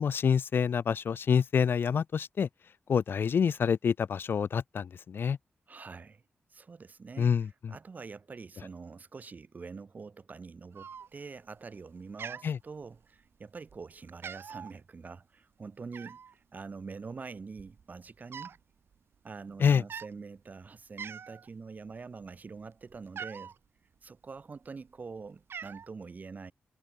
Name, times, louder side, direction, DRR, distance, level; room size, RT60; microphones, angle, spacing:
voice 1, 0.0-2.5 2.9-5.4 7.2-7.7 12.4-12.6 19.6-19.8, left 7 dB, 65° left, 0.5 m, -27 dB
voice 2, 5.7-6.2 6.5-18.6 19.2-23.5 24.0-26.5, right 4 dB, 45° right, 4.2 m, -45 dB
Cat, 10.7-11.4 11.7-11.9 12.2-13.2 13.7-13.8 14.1-14.7 15.9-16.3 17.1-17.2 17.5-18.6 18.9-19.1 19.8-20.1 20.6-20.7 21.0-21.5 21.9-23.6 24.4-25.0 25.2-25.9, right 7 dB, 75° right, 2.2 m, -43 dB
wide cardioid pair, 135°, 4 cm